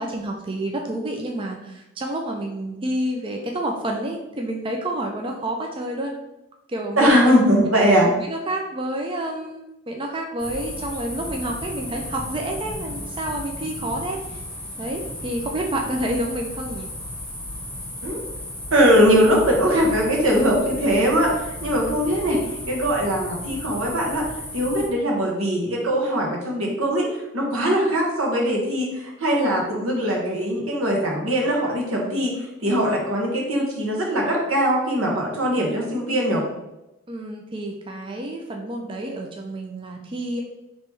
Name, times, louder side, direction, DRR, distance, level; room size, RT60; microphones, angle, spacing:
voice 1, 0.0-6.1 6.7-7.2 8.2-14.4 14.8-16.9 37.1-40.4, right 1 dB, 25° right, 2 dB, 0.4 m, -29 dB
voice 2, 7.0-8.1 18.0-18.2 18.7-22.4 22.7-24.2 24.5-27.1 27.3-36.4, equal, 90° right, -1 dB, 1.2 m, -21 dB
sound 1, 10.4-24.9, left 1 dB, 5° left, 0.7 m, -34 dB
3.4 x 3.0 x 4.5 m, 0.93 s
head